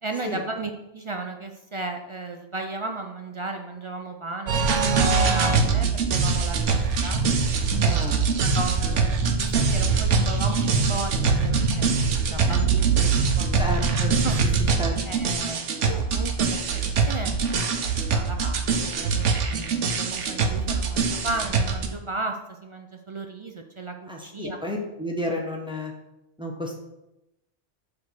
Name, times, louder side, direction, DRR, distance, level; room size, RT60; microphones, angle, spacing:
voice 1, 0.0-6.7 7.0-7.2 7.8-8.0 8.4-14.0 14.2-14.6 15.0-17.3 18.1-24.6, right 3 dB, 55° right, 4 dB, 0.3 m, -35 dB
sound 1, 4.5-21.9, right 5 dB, 80° right, 1.1 m, -23 dB
voice 2, 7.7-8.2 13.6-14.2 14.8-14.9 24.1-25.9 26.4-26.8, left 1 dB, 5° right, 0 dB, 1.0 m, -31 dB
6.7 x 3.6 x 6.2 m, 0.90 s
omnidirectional pair, 1.2 m